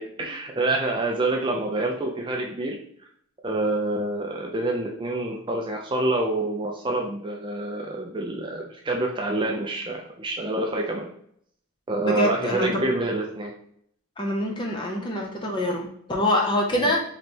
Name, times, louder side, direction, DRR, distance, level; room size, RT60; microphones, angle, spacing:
voice 1, 0.0-2.8 3.4-11.1 11.9-13.5 16.8-16.9, right 2 dB, 20° right, 0 dB, 0.4 m, -27 dB
voice 2, 12.0-12.8 14.2-17.0, left 1 dB, 20° left, 0 dB, 0.7 m, -25 dB
3.2 x 3.2 x 4.2 m, 0.67 s
head